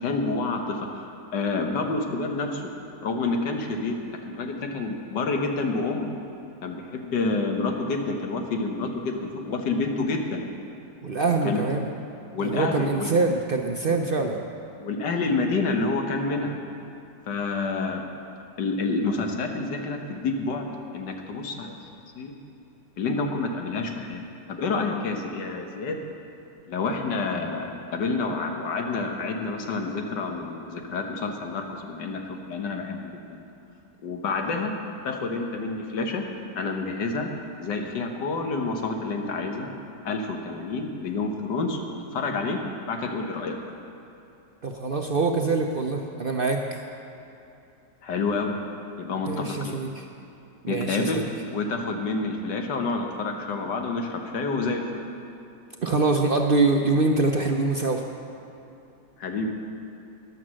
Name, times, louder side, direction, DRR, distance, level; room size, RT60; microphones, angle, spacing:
voice 1, 0.0-1.1 1.3-2.7 3.0-3.9 4.2-6.1 6.6-10.4 11.4-11.6 12.3-13.1 13.9-14.0 14.8-16.6 17.3-18.0 18.6-21.8 22.1-22.4 23.0-24.2 24.5-26.0 26.7-33.0 33.3-33.4 34.0-34.7 35.0-36.2 36.5-37.3 37.6-39.7 40.0-41.8 42.1-42.6 42.9-43.6 48.0-48.5 49.0-49.8 50.7-51.2 51.5-55.0 59.2-59.5, left 3 dB, 80° left, 3 dB, 1.8 m, -28 dB
voice 2, 11.0-11.9 12.4-14.4 44.6-46.8 49.2-50.1 50.6-51.2 55.8-58.0, right 3 dB, 55° right, 3 dB, 0.6 m, -24 dB
14.0 x 11.0 x 6.2 m, 2.7 s
omnidirectional pair, 1.8 m